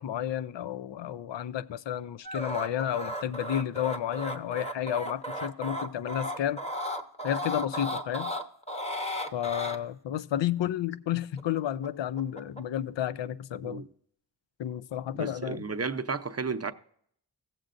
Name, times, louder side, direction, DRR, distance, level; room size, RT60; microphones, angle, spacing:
voice 1, 0.0-6.6 7.2-8.3 9.3-13.8 14.6-15.6, left 11 dB, 75° left, 0.5 m, -31 dB
sound 1, 2.2-9.8 11.4-11.9 12.2-12.6, equal, 15° left, 1.0 m, -35 dB
voice 2, 15.1-16.7, right 4 dB, 35° right, 0.6 m, -33 dB
16.0 x 7.6 x 2.5 m
wide cardioid pair, 50°, 45 cm